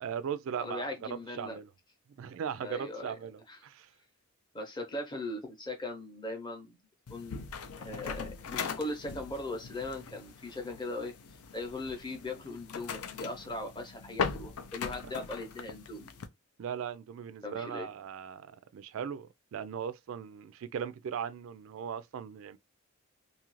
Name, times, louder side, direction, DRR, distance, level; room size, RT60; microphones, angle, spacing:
voice 1, 0.0-1.7 2.2-3.9 15.0-15.1 16.6-22.6, right 8 dB, 65° right, 0.3 m, -38 dB
voice 2, 0.6-1.6 2.6-3.2 3.5-3.6 4.5-6.8 7.1-7.4 7.8-11.1 11.5-16.1 17.4-17.9, left 2 dB, 20° left, 0.6 m, -39 dB
sound 1, 7.1-16.3, left 6 dB, 90° left, 0.5 m, -40 dB
2.7 x 2.4 x 3.0 m
head